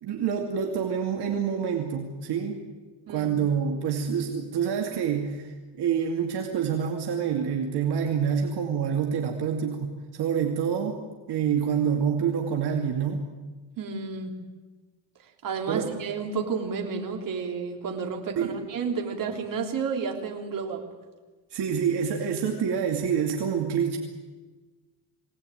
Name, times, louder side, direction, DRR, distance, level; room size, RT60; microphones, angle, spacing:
voice 1, 0.0-2.6 3.1-11.0 11.3-13.3 15.7-15.9 18.4-18.6 21.5-24.0, right 7 dB, 70° right, 1 dB, 2.7 m, -27 dB
voice 2, 13.8-14.4 15.4-20.8, right 5 dB, 50° right, 2 dB, 3.5 m, -31 dB
22.5 x 18.5 x 9.2 m, 1.3 s
cardioid pair, 140°, 41 cm